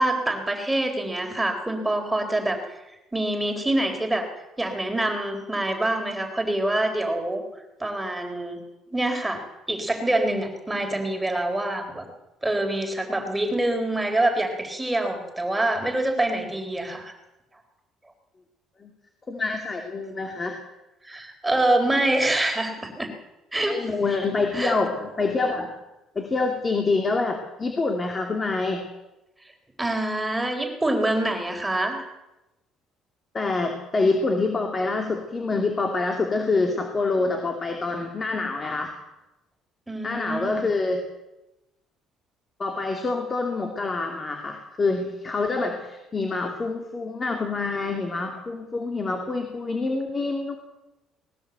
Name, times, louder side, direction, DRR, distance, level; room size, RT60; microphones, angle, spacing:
voice 1, 0.0-2.6 3.1-4.3 4.6-7.4 7.8-8.6 8.9-9.4 9.7-12.1 12.4-17.1 21.0-23.1 23.5-23.8 24.5-24.7 29.8-32.1 39.9-40.7, right 1 dB, 10° right, 4 dB, 4.0 m, -25 dB
voice 2, 19.3-20.6 23.7-25.7 26.1-28.9 33.3-38.9 40.0-41.0 42.6-50.6, left 3 dB, 25° left, 3 dB, 2.6 m, -26 dB
19.5 x 18.0 x 8.1 m, 0.97 s
cardioid pair, 125°, 0 cm